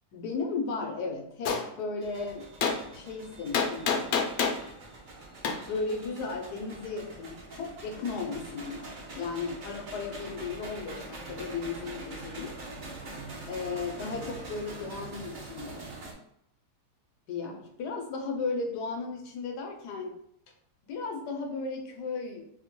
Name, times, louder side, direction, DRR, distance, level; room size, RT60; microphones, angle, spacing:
voice 1, 0.1-2.5 2.9-4.2 5.7-8.9 9.1-12.5 13.5-15.9 17.3-20.2 20.8-22.4, left 4 dB, 90° left, 2 dB, 1.2 m, -35 dB
Gunshot gunfire, 1.4-1.6 2.6-2.8 3.5-4.6 5.4-5.6, left 6 dB, 70° left, 0.9 m, -26 dB
sound 1, 2.0-16.1, right 2 dB, 65° right, 0.4 m, -44 dB
4.2 x 2.1 x 2.9 m, 0.73 s
omnidirectional pair, 1.7 m